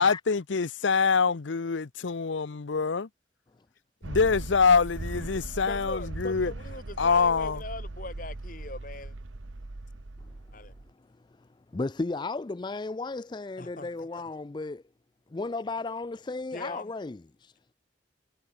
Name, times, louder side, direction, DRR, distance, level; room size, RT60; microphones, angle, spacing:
voice 1, 0.0-3.1 4.1-6.5 7.0-7.6, left 5 dB, 75° left, 0.7 m, -25 dB
sound 1, 4.0-10.9, right 2 dB, 85° right, 1.1 m, -39 dB
voice 2, 5.7-9.1 10.5-10.7 13.6-14.2 16.5-16.9, left 2 dB, 45° left, 3.7 m, -40 dB
voice 3, 11.0-14.8 15.3-17.5, left 3 dB, 25° left, 0.4 m, -35 dB
head